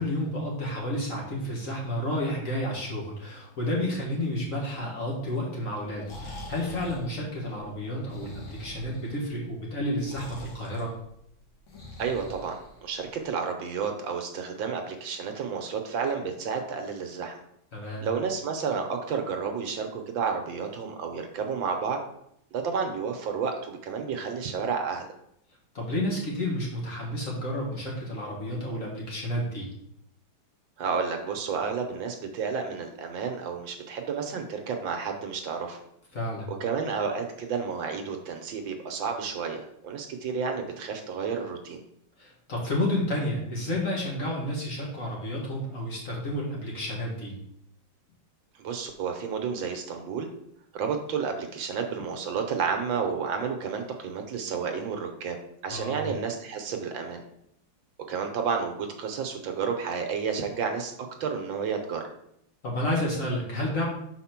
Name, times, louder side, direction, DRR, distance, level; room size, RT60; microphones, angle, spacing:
voice 1, 0.0-10.9 17.7-18.1 25.7-29.7 36.1-36.5 42.2-47.4 55.7-56.1 62.6-63.8, left 1 dB, 45° left, -3 dB, 1.9 m, -31 dB
Breathing, 6.0-13.2, left 1 dB, 85° left, 2.4 m, -44 dB
voice 2, 12.0-17.4 18.0-22.0 22.5-25.1 30.8-35.8 36.6-41.8 48.6-50.3 50.7-55.4 55.6-57.2 58.1-62.1, right 6 dB, 75° right, 4 dB, 1.5 m, -31 dB
5.1 x 4.3 x 5.9 m, 0.75 s
omnidirectional pair, 2.2 m